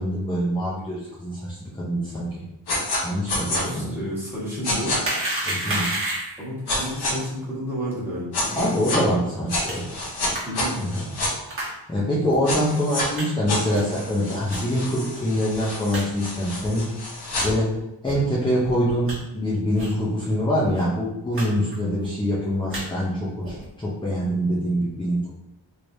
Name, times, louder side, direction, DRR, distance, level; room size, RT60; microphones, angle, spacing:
voice 1, 0.0-2.4 3.0-3.9 5.4-5.9 8.5-9.8 10.8-11.1 11.9-16.9 17.4-17.7 18.0-25.3, equal, 10° left, -7 dB, 0.5 m, -24 dB
sound 1, 2.7-3.0 3.3-3.6 4.6-5.0 6.7-7.1 8.3-9.0 9.5-11.3 12.4-13.1 13.5-17.4, left 1 dB, 55° left, 0.9 m, -28 dB
voice 2, 3.5-4.9 6.4-8.7 10.4-10.8, equal, 5° right, -10 dB, 1.3 m, -31 dB
sound 2, 5.0-6.5 9.7-9.8 10.3-10.4 11.5-11.7 12.3-12.4 13.1-13.2 13.7-14.0 14.5-14.6 15.2-15.3 15.5-15.6 15.9-16.0 16.6-16.7 17.3-17.5 18.0-18.2 18.6-19.1 19.8-20.0 20.3-20.4 20.6-20.8 21.3-21.5 21.7-22.1 22.5-22.8 23.4-23.7, right 1 dB, 30° right, 1.1 m, -30 dB
3.3 x 3.1 x 2.6 m, 0.89 s
wide cardioid pair, 160°, 46 cm